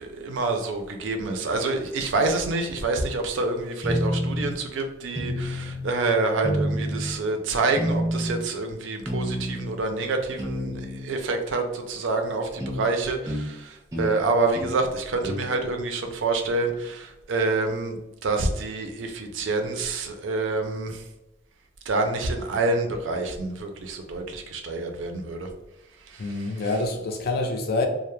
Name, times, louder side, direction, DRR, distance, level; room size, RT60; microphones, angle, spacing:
voice 1, 0.0-21.0 21.9-25.5 26.1-26.4, right 3 dB, 85° right, 0.4 m, -27 dB
sound 1, 3.8-4.5 5.1-5.9 6.4-7.1 7.8-8.4 9.1-9.7 10.4-11.1 12.6-12.8 13.3-13.5 13.9-14.1 14.5-14.8 15.2-15.5, equal, 20° right, 0.6 m, -28 dB
voice 2, 26.2-27.9, left 2 dB, 55° left, 0.4 m, -26 dB
2.2 x 2.0 x 3.0 m
head